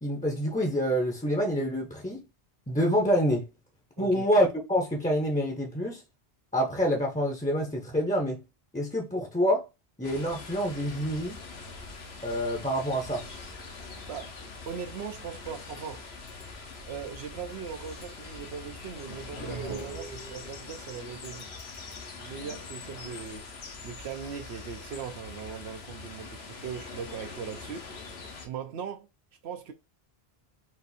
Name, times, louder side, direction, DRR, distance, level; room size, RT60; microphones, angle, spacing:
voice 1, 0.0-2.2 2.7-3.5 4.0-6.0 6.5-8.4 8.7-9.7 10.0-11.4 12.2-13.2, equal, 10° left, 0.5 m, -27 dB
sound 1, 10.0-28.5, left 4 dB, 80° left, 1.1 m, -43 dB
voice 2, 14.1-14.4 14.7-16.1 16.8-21.5 22.2-23.5 23.8-27.9 28.4-29.1 29.4-29.7, right 7 dB, 85° right, 0.9 m, -39 dB
sound 2, 19.3-20.8, right 4 dB, 35° right, 0.7 m, -39 dB
4.3 x 2.5 x 4.0 m
omnidirectional pair, 1.0 m